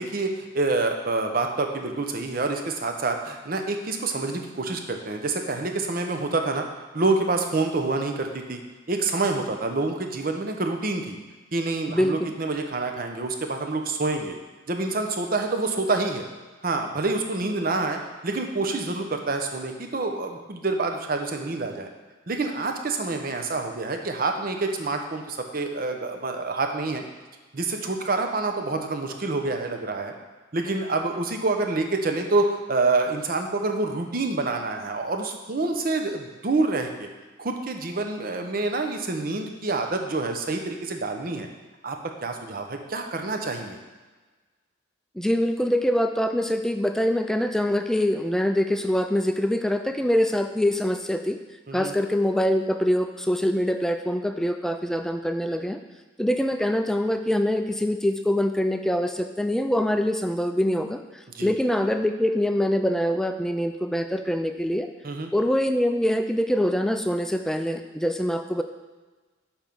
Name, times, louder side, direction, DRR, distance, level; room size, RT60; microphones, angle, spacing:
voice 1, 0.0-6.6 6.9-8.6 8.9-11.2 11.5-14.3 14.7-16.2 16.6-21.9 22.3-27.0 27.5-30.1 30.5-37.1 37.4-41.5 41.8-42.0 42.2-43.8 51.7-51.9 61.3-61.5 65.0-65.3, right 3 dB, 50° right, 4 dB, 0.7 m, -27 dB
voice 2, 11.9-12.3 45.2-51.4 51.7-55.8 56.2-61.0 61.4-64.9 65.3-68.6, equal, 5° left, 6 dB, 0.3 m, -24 dB
7.1 x 4.4 x 5.4 m, 1.3 s
head